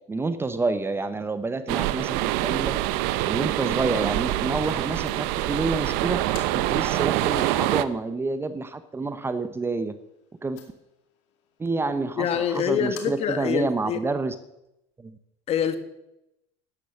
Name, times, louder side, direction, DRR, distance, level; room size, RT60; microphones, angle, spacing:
voice 1, 0.1-2.8 3.3-10.0 10.4-10.6 11.6-14.3 15.0-15.2, right 3 dB, 15° right, 0.9 m, -28 dB
sound 1, 0.7-13.7, left 8 dB, 75° left, 2.4 m, -54 dB
sound 2, 1.7-7.8, right 15 dB, 65° right, 0.8 m, -25 dB
voice 2, 12.1-14.0 15.5-15.8, left 8 dB, 45° left, 1.6 m, -25 dB
12.0 x 9.9 x 6.5 m
supercardioid pair, 105°, 15 cm